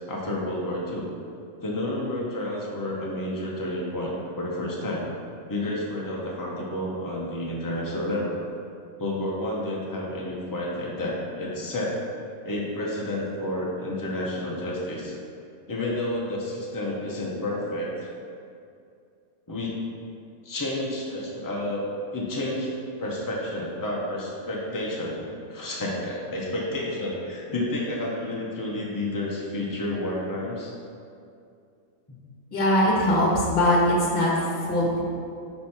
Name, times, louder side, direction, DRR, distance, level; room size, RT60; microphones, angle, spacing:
voice 1, 0.1-1.1 1.6-5.0 5.5-8.5 9.0-12.0 12.4-15.1 15.7-18.1 19.5-19.8 20.4-22.7 23.0-25.2 25.5-30.7, left 1 dB, 15° left, -4 dB, 0.8 m, -30 dB
voice 2, 32.5-34.3 34.7-35.0, left 1 dB, 40° left, -3 dB, 1.3 m, -21 dB
5.8 x 5.1 x 4.4 m, 2.4 s
omnidirectional pair, 1.5 m